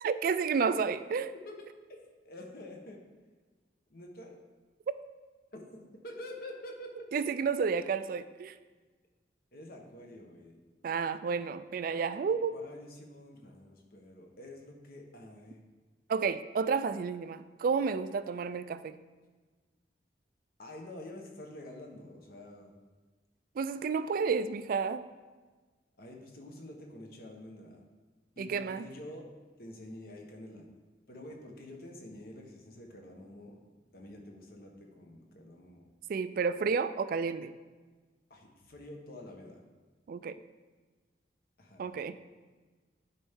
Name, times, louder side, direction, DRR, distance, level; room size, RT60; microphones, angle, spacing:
voice 1, 0.0-1.3 7.1-8.6 10.8-12.5 16.1-19.0 23.6-25.0 28.4-28.9 36.1-37.5 40.1-40.4 41.8-42.2, right 5 dB, 50° right, 13 dB, 0.3 m, -31 dB
voice 2, 2.2-3.0 3.9-4.4 5.5-7.1 9.5-10.6 12.5-15.6 20.6-22.8 26.0-27.8 28.4-29.2 29.6-30.7 31.1-33.6 33.9-35.9 38.3-39.6 41.6-41.9, left 1 dB, 55° left, 2 dB, 1.1 m, -47 dB
10.0 x 4.3 x 3.6 m, 1.3 s
head